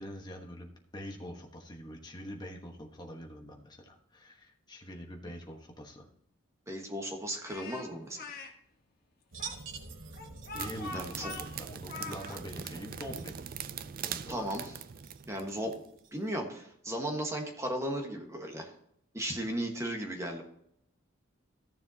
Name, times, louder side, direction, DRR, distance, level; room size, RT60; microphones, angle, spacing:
voice 1, 0.0-6.1 10.5-13.4 14.0-14.5 19.2-19.4, equal, 20° left, 1 dB, 1.2 m, -44 dB
voice 2, 6.7-8.2 10.9-11.3 14.3-14.8 15.2-15.8 16.1-18.7 19.1-20.4, right 1 dB, 15° right, 2 dB, 1.3 m, -36 dB
Speech, 7.4-8.5 9.4-12.4, left 3 dB, 45° left, 1.2 m, -43 dB
sound 1, 9.3-16.3, right 5 dB, 70° right, 1.0 m, -48 dB
sound 2, 10.5-15.9, right 8 dB, 45° right, 0.4 m, -42 dB
14.0 x 6.9 x 2.8 m, 0.74 s
head